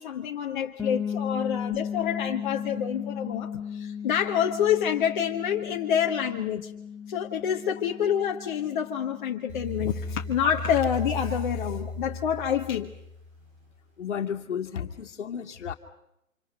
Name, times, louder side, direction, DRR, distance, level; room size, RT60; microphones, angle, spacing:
voice 1, 0.0-6.7 7.1-12.9, left 9 dB, 35° left, 2 dB, 1.5 m, -27 dB
sound 1, 0.8-10.5, left 7 dB, ahead, 2.2 m, -36 dB
sound 2, 9.5-13.6, left 2 dB, 20° right, 3.1 m, -35 dB
voice 2, 14.0-15.7, left 8 dB, 55° left, 5 dB, 2.3 m, -33 dB
30.0 x 26.5 x 5.6 m, 0.81 s
figure-of-eight pair, 140°, 42 cm